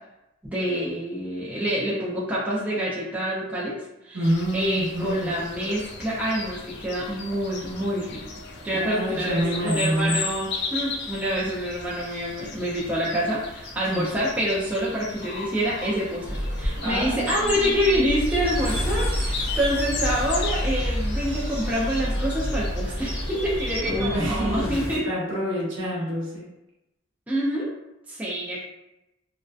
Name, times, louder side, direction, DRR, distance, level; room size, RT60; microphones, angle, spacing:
voice 1, 0.4-4.3 4.5-8.2 8.6-25.1 27.3-27.7 28.1-28.6, equal, 10° right, -7 dB, 0.4 m, -27 dB
voice 2, 4.1-5.3 8.6-10.2 13.9-14.1 16.7-18.1 23.8-26.4, equal, 65° right, -5 dB, 0.9 m, -27 dB
sound 1, 4.2-23.8, left 4 dB, 55° left, 0.3 m, -36 dB
sound 2, 16.2-24.2, equal, 30° right, 0.8 m, -29 dB
sound 3, 17.7-25.0, equal, 25° left, 0.8 m, -34 dB
2.5 x 2.1 x 2.3 m, 0.90 s
head